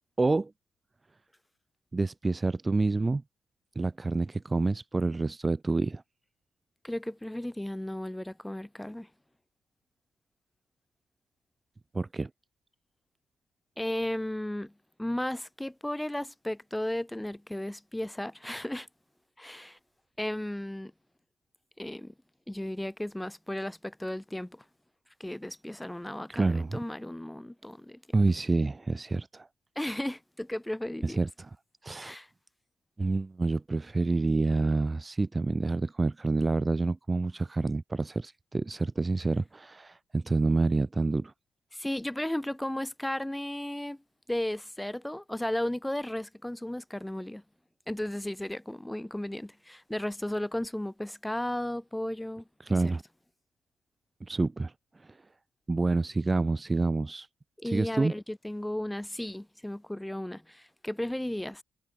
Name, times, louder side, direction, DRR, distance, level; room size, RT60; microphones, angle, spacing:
voice 1, 0.2-0.5 1.9-3.2 3.7-6.0 11.9-12.3 26.3-26.8 28.1-29.5 31.0-31.3 31.8-32.1 33.0-41.3 52.6-53.0 54.2-55.2 55.7-57.3 57.6-58.1, right 3 dB, 20° right, 1.0 m, -28 dB
voice 2, 6.8-9.1 13.8-18.9 19.4-19.8 20.2-20.9 21.8-22.1 22.5-24.6 25.2-28.0 29.8-31.2 32.0-32.3 41.7-44.0 44.3-47.4 47.9-53.0 57.6-61.6, left 1 dB, 5° left, 4.0 m, -35 dB
cardioid pair, 105°, 0 cm